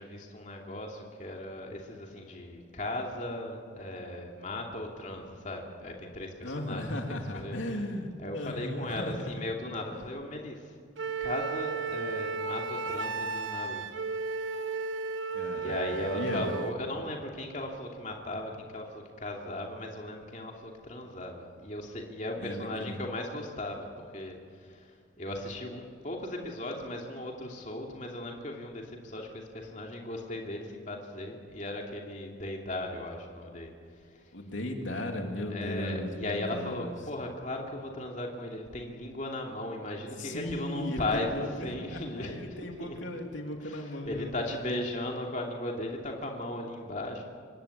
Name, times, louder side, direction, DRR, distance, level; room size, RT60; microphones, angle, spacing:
voice 1, 0.0-6.9 7.3-7.6 8.2-10.7 11.2-13.8 15.5-34.3 35.5-42.4 42.6-43.0 43.6-47.2, left 1 dB, 40° left, 0 dB, 2.8 m, -37 dB
voice 2, 6.4-9.4 15.3-15.8 16.1-16.5 22.4-23.0 34.3-36.9 40.2-41.0 41.6-44.6, left 1 dB, 80° left, 2 dB, 3.1 m, -36 dB
Wind instrument woodwind instrument, 11.0-16.8, right 4 dB, 80° right, 1.1 m, -34 dB
25.5 x 20.0 x 8.7 m, 2.3 s
head